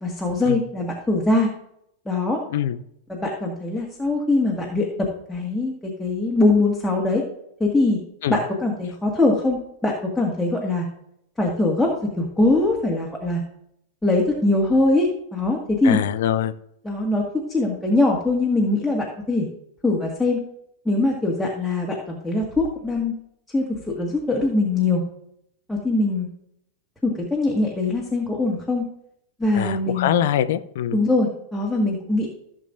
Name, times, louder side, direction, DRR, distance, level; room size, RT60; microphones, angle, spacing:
voice 1, 0.0-1.5 2.1-2.4 3.1-4.9 5.3-7.2 7.6-8.0 8.3-10.8 11.4-11.9 12.2-13.4 14.0-16.0 16.8-17.2 17.5-19.5 19.8-20.4 20.9-23.1 23.5-25.0 25.7-26.3 27.0-28.8 29.4-30.2 30.9-32.3, left 2 dB, 5° left, -3 dB, 1.7 m, -22 dB
voice 2, 15.8-16.5 29.5-31.0, left 10 dB, 55° left, 14 dB, 0.6 m, -23 dB
15.0 x 7.1 x 2.5 m, 0.76 s
figure-of-eight pair, 90°, 0 cm